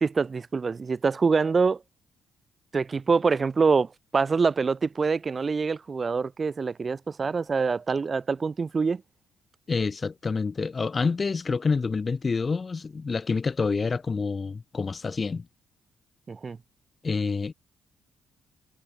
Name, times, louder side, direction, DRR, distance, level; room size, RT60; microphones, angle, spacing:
voice 1, 0.0-1.8 2.7-9.0 16.3-16.6, right 4 dB, 35° right, 2.0 m, -25 dB
voice 2, 9.7-15.5 17.0-17.5, left 4 dB, 35° left, 3.1 m, -27 dB
cardioid pair, 90°, 0 cm